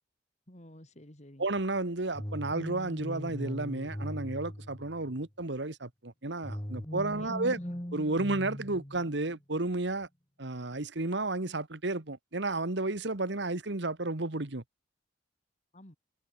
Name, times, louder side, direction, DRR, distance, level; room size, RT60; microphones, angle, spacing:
voice 1, 0.5-1.5 7.1-7.8 15.7-16.0, left 1 dB, 40° left, 4.2 m, -52 dB
voice 2, 1.4-7.6 7.9-10.1 10.4-14.6, right 2 dB, 65° right, 1.7 m, -32 dB
sound 1, 2.1-5.3 6.4-9.4, equal, 20° left, 2.6 m, -40 dB
head